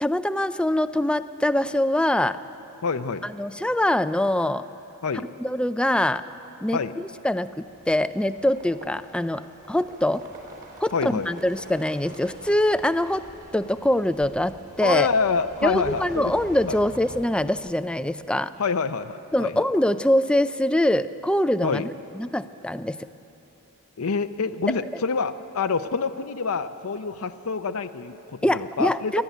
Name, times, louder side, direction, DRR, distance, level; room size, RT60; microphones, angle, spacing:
voice 1, 0.0-2.4 3.2-4.6 5.4-6.2 6.6-7.5 7.9-10.2 10.8-13.2 13.5-15.1 15.6-18.5 19.3-21.8 22.2-23.0 28.4-29.2, left 1 dB, 5° left, 12 dB, 0.4 m, -23 dB
voice 2, 2.8-3.3 5.0-5.3 6.7-6.9 10.9-11.3 14.8-16.3 16.6-16.8 18.6-19.6 21.6-21.9 24.0-29.2, left 5 dB, 70° left, 8 dB, 0.6 m, -27 dB
sound 1, 7.4-18.1, right 1 dB, 40° right, 3.8 m, -46 dB
28.0 x 11.5 x 9.3 m, 3.0 s
head